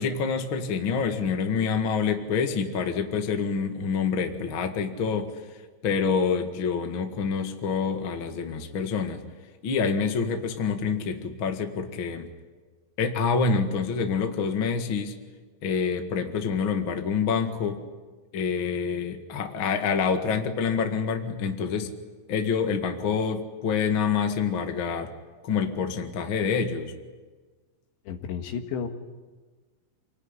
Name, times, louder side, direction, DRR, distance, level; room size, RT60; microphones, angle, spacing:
voice 1, 0.0-5.3 5.8-9.2 9.6-12.3 13.0-15.1 15.6-17.8 18.3-21.9 22.3-25.1 25.4-26.9, left 5 dB, 55° left, 5 dB, 1.4 m, -27 dB
voice 2, 28.1-28.9, left 7 dB, 75° left, 5 dB, 3.9 m, -32 dB
28.0 x 19.5 x 9.9 m, 1.4 s
omnidirectional pair, 5.2 m